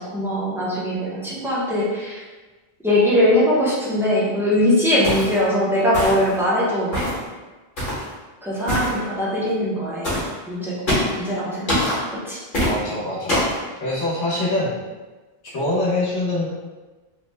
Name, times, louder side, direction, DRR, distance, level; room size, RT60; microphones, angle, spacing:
voice 1, 0.0-2.2 2.8-6.9 8.4-10.2 10.5-12.0 12.2-12.4, left 1 dB, 5° right, -7 dB, 0.5 m, -21 dB
sound 1, 5.0-5.4 5.9-6.4 6.9-7.2 7.8-8.1 8.7-8.9 10.0-10.3 10.9-11.2 11.7-12.0 12.5-12.7 13.3-13.6, left 1 dB, 50° left, 1.3 m, -23 dB
voice 2, 12.6-13.4 13.8-14.7 15.4-16.5, left 1 dB, 80° left, -6 dB, 1.2 m, -24 dB
3.1 x 2.1 x 3.2 m, 1.2 s
omnidirectional pair, 1.1 m